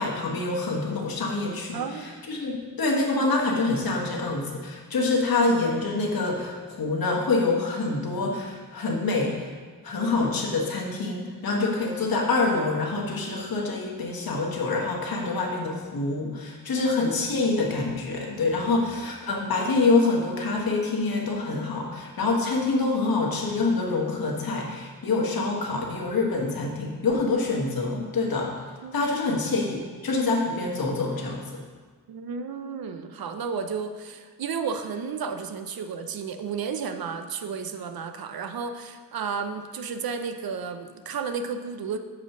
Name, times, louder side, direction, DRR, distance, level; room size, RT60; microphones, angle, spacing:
voice 1, 0.0-9.5 9.8-28.5 28.9-31.6, left 3 dB, 85° left, -1 dB, 1.4 m, -26 dB
voice 2, 1.7-2.1 16.8-17.3 28.8-29.0 32.1-42.0, right 5 dB, 90° right, 8 dB, 0.6 m, -33 dB
7.2 x 4.9 x 5.8 m, 1.5 s
wide cardioid pair, 160°, 35 cm